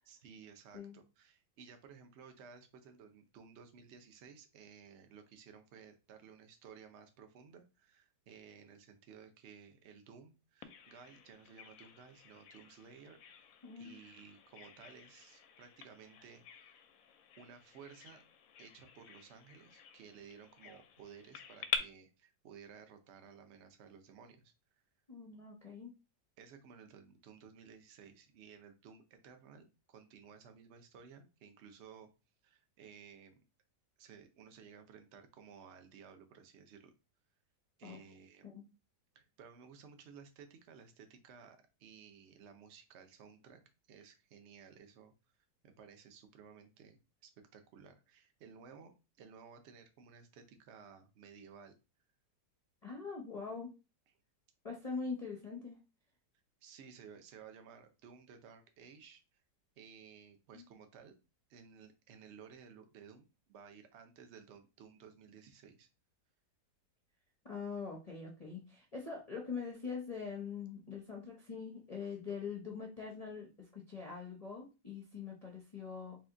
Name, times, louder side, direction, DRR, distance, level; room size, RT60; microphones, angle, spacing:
voice 1, 0.1-13.5 13.8-16.8 17.4-18.2 18.6-24.5 26.4-32.1 32.4-33.4 34.0-36.9 37.8-38.4 39.1-43.6 43.9-45.1 45.6-51.7 56.6-59.2 59.8-61.1 61.5-65.9, right 6 dB, 55° right, 7 dB, 0.8 m, -56 dB
Bird vocalization bird call bird song, 10.6-21.8, left 7 dB, 70° left, 0.9 m, -47 dB
voice 2, 13.6-14.0 25.1-25.9 37.8-38.0 38.4-38.6 52.8-53.7 54.6-55.8 60.5-60.6 67.4-76.2, left 5 dB, 35° left, -2 dB, 0.6 m, -43 dB
4.1 x 3.0 x 3.8 m, 0.29 s
omnidirectional pair, 1.9 m